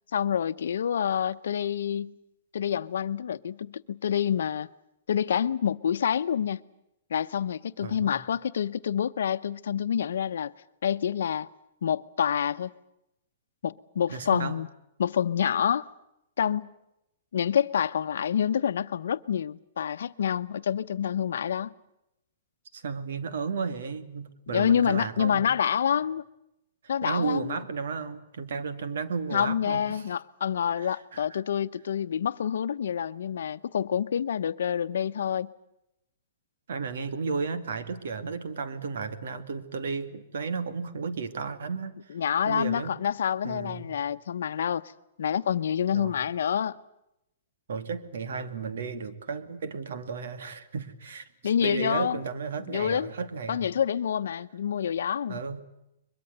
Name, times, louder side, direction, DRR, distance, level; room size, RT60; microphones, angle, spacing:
voice 1, 0.1-2.1 2.5-4.7 5.1-6.6 7.1-10.5 10.8-11.5 11.8-12.7 13.6-14.7 15.0-15.9 16.4-16.7 17.3-21.7 24.5-26.2 26.9-27.6 29.3-35.5 42.1-44.8 45.2-46.8 51.4-52.2 52.7-53.1 53.5-55.6, left 8 dB, 80° left, 0.9 m, -27 dB
voice 2, 7.8-8.2 14.1-14.6 22.7-25.5 27.0-30.1 30.8-31.4 36.7-42.0 42.4-42.9 43.4-43.9 45.9-46.2 47.7-51.3 51.6-53.7 55.3-55.6, right 5 dB, 75° right, 2.2 m, -33 dB
22.5 x 22.5 x 8.0 m
hypercardioid pair, 175°, 0 cm